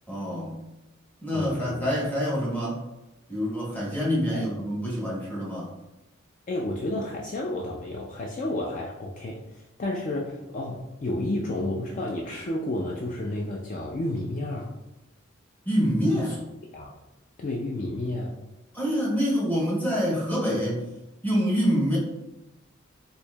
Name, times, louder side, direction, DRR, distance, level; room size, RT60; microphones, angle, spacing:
voice 1, 0.1-0.6 1.2-2.8 3.3-5.7 15.7-16.3 18.7-20.8 21.2-22.0, equal, 10° left, -5 dB, 0.9 m, -26 dB
voice 2, 1.3-1.9 4.3-4.5 6.5-14.7 16.1-16.4 16.7-16.9 17.4-18.3, left 1 dB, 40° left, -2 dB, 0.4 m, -31 dB
4.4 x 2.6 x 2.3 m, 0.95 s
head